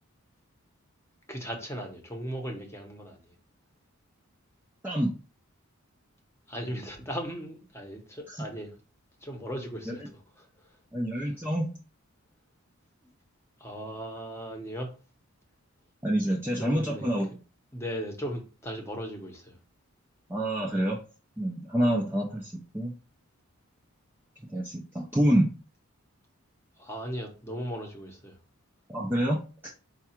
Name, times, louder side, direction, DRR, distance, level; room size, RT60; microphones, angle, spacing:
voice 1, 1.3-3.3 6.5-8.7 9.2-10.5 11.2-11.3 13.6-14.9 16.3-17.1 17.7-19.6 26.8-28.4, equal, 10° left, 0.8 m, -37 dB
voice 2, 4.8-5.1 8.3-8.4 9.9-10.0 10.9-11.7 16.0-17.3 20.3-21.0 21.4-22.9 24.5-25.5 28.9-29.4, right 1 dB, 10° right, 0.4 m, -27 dB
4.7 x 2.3 x 4.3 m
head